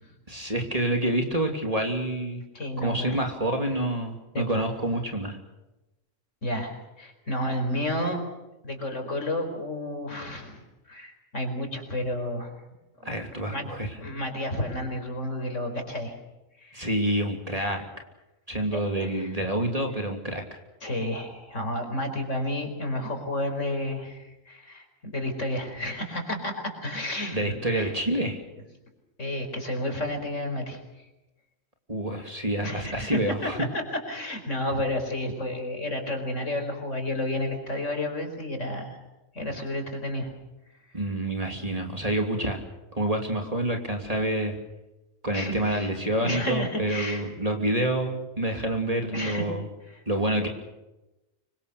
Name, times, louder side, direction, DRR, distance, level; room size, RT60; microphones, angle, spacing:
voice 1, 0.3-2.4 2.8-5.4 13.0-14.0 16.7-17.9 18.5-20.6 27.3-28.4 31.9-33.6 39.4-39.5 40.9-42.6 42.9-44.5 45.2-49.6 50.1-50.5, right 1 dB, 25° right, 3 dB, 3.0 m, -28 dB
voice 2, 2.5-3.2 4.3-4.6 6.4-8.2 8.6-12.5 13.4-13.7 14.0-16.1 16.6-16.9 18.7-19.3 20.8-24.8 25.1-27.9 29.2-30.8 32.6-33.8 34.1-39.0 39.3-40.3 45.3-45.9 46.2-47.2 49.1-49.5 49.9-50.0, left 1 dB, 65° left, 4 dB, 5.0 m, -31 dB
26.0 x 24.0 x 6.8 m, 0.98 s
omnidirectional pair, 1.4 m